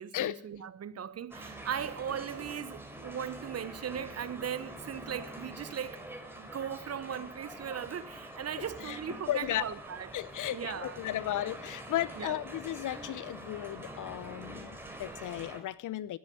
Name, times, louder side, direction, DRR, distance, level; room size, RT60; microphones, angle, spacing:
voice 1, 0.0-6.1 6.3-10.1 10.5-11.0 12.2-12.4, right 8 dB, 35° right, 1.2 m, -38 dB
sound 1, 1.3-15.6, right 1 dB, 5° right, 4.4 m, -45 dB
voice 2, 9.3-9.6 10.1-16.2, left 13 dB, 50° left, 0.9 m, -35 dB
15.0 x 10.5 x 9.1 m
hypercardioid pair, 60°, 41 cm